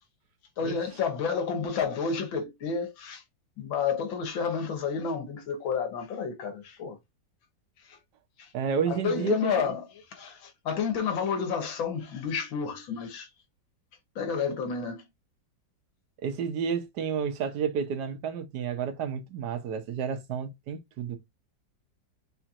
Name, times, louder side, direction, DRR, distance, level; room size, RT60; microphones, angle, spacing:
voice 1, 0.6-3.2 3.6-7.0 7.8-8.0 8.4-8.5 8.9-13.3 14.2-15.0, left 6 dB, 80° left, 2.0 m, -30 dB
voice 2, 8.5-9.7 16.2-21.2, right 7 dB, 65° right, 1.4 m, -31 dB
4.4 x 4.3 x 2.5 m
omnidirectional pair, 2.1 m